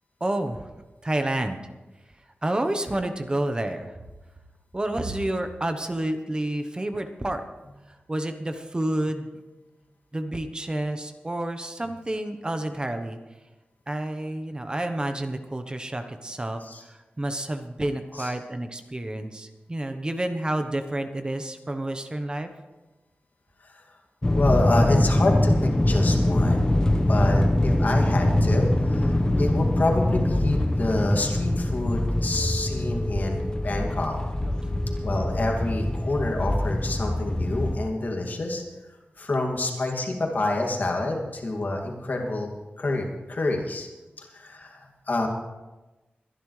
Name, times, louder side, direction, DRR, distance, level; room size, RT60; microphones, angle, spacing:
voice 1, 0.2-0.7 1.0-1.6 2.4-3.9 4.7-7.4 8.1-9.3 10.1-13.2 13.9-22.5, right 1 dB, 25° right, 7 dB, 1.1 m, -29 dB
sound 1, 24.2-37.8, left 1 dB, 20° left, 1.1 m, -23 dB
voice 2, 24.3-26.7 27.1-34.2 35.0-38.6 39.2-43.9 44.2-45.3, left 2 dB, 55° left, 1 dB, 2.4 m, -28 dB
22.5 x 11.0 x 3.3 m, 1.1 s
wide cardioid pair, 90°, 4 cm